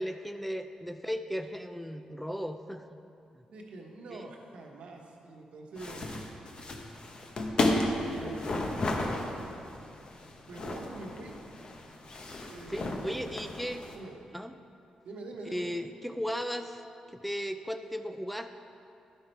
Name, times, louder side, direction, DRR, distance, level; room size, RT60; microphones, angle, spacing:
voice 1, 0.0-3.0 4.1-4.3 12.7-13.8 14.3-14.5 15.5-16.8 17.1-18.5, equal, 5° left, 8 dB, 0.4 m, -36 dB
voice 2, 3.5-6.1 7.7-8.7 10.5-11.4 12.4-13.5 13.9-14.2 15.0-15.7, right 2 dB, 70° right, 1 dB, 1.2 m, -45 dB
sound 1, 5.8-14.0, left 2 dB, 45° left, 1.0 m, -33 dB
11.5 x 5.5 x 4.5 m, 2.7 s
cardioid pair, 70°, 2 cm